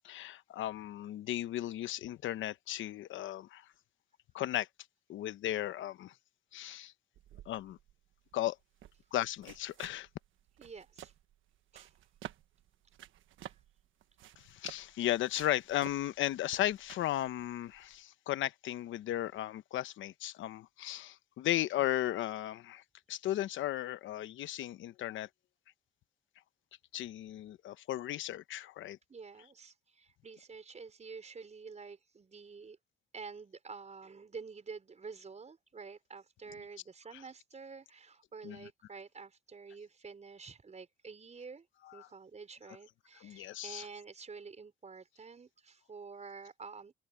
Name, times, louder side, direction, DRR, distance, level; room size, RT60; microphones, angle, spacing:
voice 1, 0.0-3.6 4.3-4.7 5.1-6.1 6.5-6.9 7.5-7.8 8.3-8.6 9.1-10.1 14.4-22.8 23.1-25.3 26.9-29.0 38.4-38.7 41.9-42.1 43.2-43.9, left 13 dB, 80° left, 0.9 m, -35 dB
sound 1, 7.1-18.0, right 13 dB, 80° right, 1.4 m, -53 dB
voice 2, 10.6-11.1 11.7-11.9 29.1-32.8 33.1-41.7 41.9-46.9, right 5 dB, 35° right, 5.3 m, -49 dB
open air
cardioid pair, 90°, 20 cm